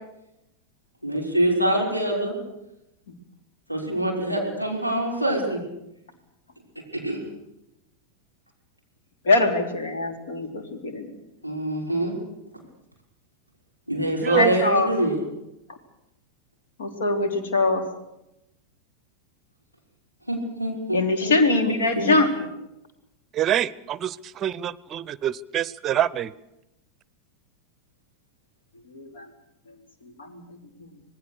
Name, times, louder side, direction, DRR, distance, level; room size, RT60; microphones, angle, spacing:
voice 1, 1.0-2.3 3.7-5.6 7.0-7.2 11.4-12.1 13.9-15.2 20.3-21.6 21.9-22.1, right 1 dB, 90° left, 0 dB, 6.0 m, -25 dB
voice 2, 9.2-11.1 14.4-14.9 16.8-17.8 20.9-22.3 28.9-29.3 29.7-29.8 30.0-30.9, left 3 dB, 65° left, 6 dB, 3.4 m, -23 dB
voice 3, 14.2-14.5 23.3-26.3, right 11 dB, 30° right, 21 dB, 0.7 m, -26 dB
27.0 x 19.5 x 6.7 m, 0.88 s
figure-of-eight pair, 90°, 0 cm